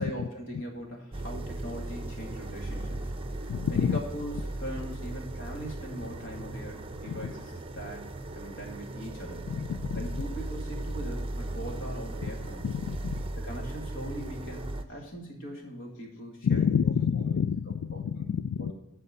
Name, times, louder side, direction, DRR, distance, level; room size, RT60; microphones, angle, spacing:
voice 1, 0.0-9.4 9.9-12.7 13.4-17.5 17.9-18.3 18.6-18.7, equal, 60° left, 1 dB, 2.1 m, -41 dB
sound 1, 1.1-14.8, right 2 dB, 25° right, 0.6 m, -37 dB
voice 2, 3.5-4.0 7.1-7.3 9.5-10.1 12.2-12.3 12.6-13.2 16.4-18.7, left 7 dB, 85° left, 13 dB, 0.3 m, -28 dB
11.0 x 4.6 x 5.8 m, 0.95 s
head